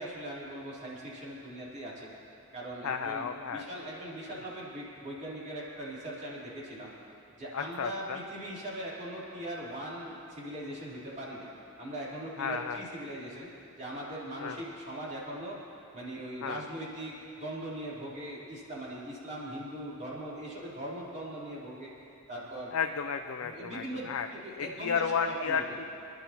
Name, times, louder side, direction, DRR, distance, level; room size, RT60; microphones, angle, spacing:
voice 1, 0.0-2.1 2.5-3.3 3.5-6.9 7.4-11.5 11.8-13.5 13.8-15.6 15.9-17.1 17.4-21.9 22.3-22.7 23.4-25.8, right 1 dB, 35° right, -7 dB, 3.8 m, -40 dB
voice 2, 2.8-3.6 7.5-8.2 12.4-12.8 14.4-14.6 16.4-16.6 22.7-24.3 24.6-25.8, left 6 dB, 65° left, 5 dB, 0.5 m, -33 dB
27.5 x 11.5 x 3.0 m, 2.7 s
head